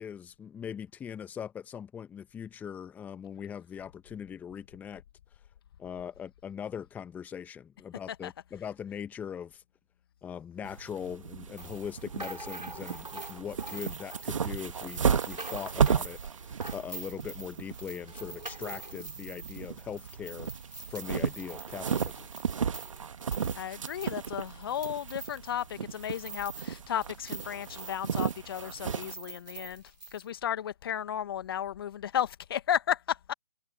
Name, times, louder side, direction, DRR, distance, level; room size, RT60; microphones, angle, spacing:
voice 1, 0.0-5.0 5.8-9.6 10.2-20.5 20.9-22.3, left 8 dB, 5° left, 1.6 m, -41 dB
sound 1, 10.6-29.1, right 7 dB, 50° right, 1.9 m, -34 dB
sound 2, 11.6-26.8 27.0-30.2, right 3 dB, 90° right, 4.5 m, -45 dB
voice 2, 23.5-29.8 30.1-33.3, left 10 dB, 35° left, 1.7 m, -34 dB
figure-of-eight pair, 140°, 21 cm